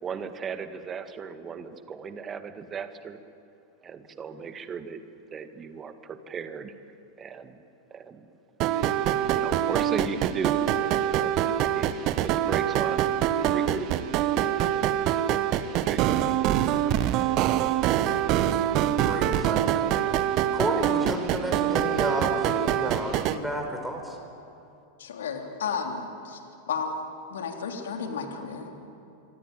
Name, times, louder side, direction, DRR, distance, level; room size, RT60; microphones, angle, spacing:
voice 1, 0.0-3.2 3.8-5.0 5.3-6.7 7.2-7.6 7.9-8.3 9.4-11.9 12.2-13.0 13.5-13.9 14.4-15.0 15.9-16.7, right 6 dB, 25° right, 9 dB, 1.9 m, -36 dB
sound 1, 8.6-23.4, right 11 dB, 40° right, 1.2 m, -25 dB
voice 2, 18.9-20.2 20.5-24.2, equal, 5° right, 3 dB, 5.4 m, -32 dB
voice 3, 25.0-26.4 26.7-27.0 27.3-28.7, left 5 dB, 60° left, 3 dB, 3.3 m, -32 dB
26.5 x 25.0 x 9.0 m, 2.7 s
figure-of-eight pair, 90°, 0 cm